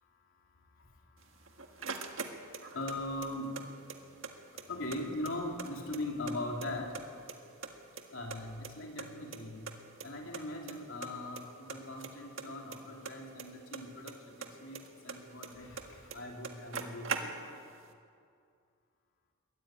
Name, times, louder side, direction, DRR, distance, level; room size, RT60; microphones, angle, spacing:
sound 1, 1.2-3.0 3.2-4.3 4.6-4.7 4.9-6.3 6.6-7.4 7.6-9.1 9.3-9.4 9.7-9.8 10.0-10.1 10.3-10.7 11.0-11.4 11.7-14.1 14.4-15.8 16.1-16.2 16.4-17.7, right 5 dB, 65° right, 1.7 m, -41 dB
voice 1, 2.7-3.5 4.7-6.9 8.1-9.7 10.0-17.5, left 1 dB, 60° left, 1 dB, 3.4 m, -40 dB
22.0 x 15.0 x 9.2 m, 2.3 s
head